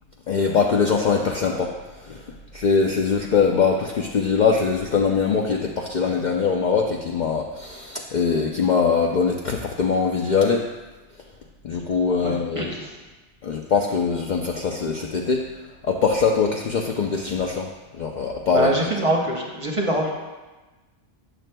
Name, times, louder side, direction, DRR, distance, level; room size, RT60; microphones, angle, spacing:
voice 1, 0.3-1.7 2.0-2.2 2.5-10.7 11.6-12.7 13.4-15.4 15.8-18.9, left 5 dB, 60° left, 1 dB, 0.5 m, -22 dB
voice 2, 12.2-13.0 18.5-20.1, right 1 dB, 30° right, -1 dB, 0.8 m, -24 dB
8.9 x 6.4 x 2.2 m, 1.2 s
omnidirectional pair, 1.2 m